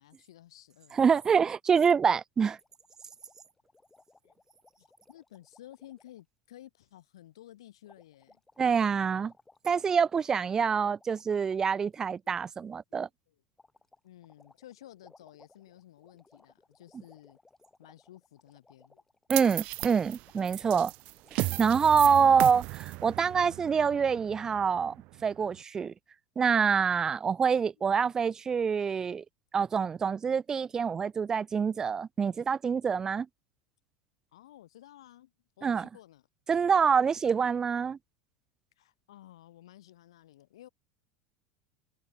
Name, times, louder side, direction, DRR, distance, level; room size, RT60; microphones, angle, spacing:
voice 1, 0.0-1.2 4.2-4.4 4.8-8.4 9.2-9.3 12.2-12.3 13.3-13.4 14.0-17.4 17.8-19.0 22.1-22.6 34.3-35.3 35.6-36.2 38.8-40.7, left 13 dB, 90° left, 5.3 m, -53 dB
voice 2, 0.9-2.6 8.6-9.3 9.6-13.1 19.3-20.9 21.3-22.6 23.0-24.9 25.2-25.9 26.4-29.2 29.5-33.3 35.6-35.9 36.5-38.0, right 6 dB, 20° right, 1.0 m, -26 dB
sound 1, 2.6-6.2 7.9-12.2 13.6-19.5 19.8-19.9 20.2-21.3, left 3 dB, 10° left, 6.6 m, -62 dB
sound 2, 19.3-25.6, right 22 dB, 55° right, 0.7 m, -36 dB
supercardioid pair, 125°, 3 cm